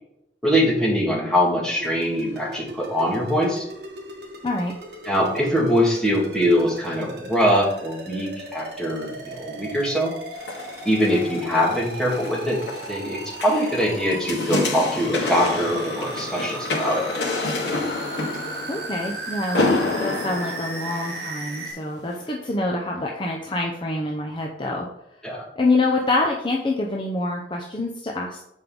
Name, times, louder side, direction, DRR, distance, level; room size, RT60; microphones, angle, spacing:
voice 1, 0.4-3.6 5.0-10.1 10.8-12.6 12.9-17.1 25.2-25.4, equal, 5° left, -4 dB, 2.0 m, -22 dB
sound 1, 1.7-21.7, right 2 dB, 60° right, 1.5 m, -37 dB
sound 2, 10.3-21.6 22.1-22.2, left 2 dB, 80° left, 1.5 m, -29 dB
voice 2, 18.7-24.9 25.6-28.4, left 2 dB, 25° left, -1 dB, 0.7 m, -26 dB
7.9 x 5.4 x 3.8 m, 0.79 s
head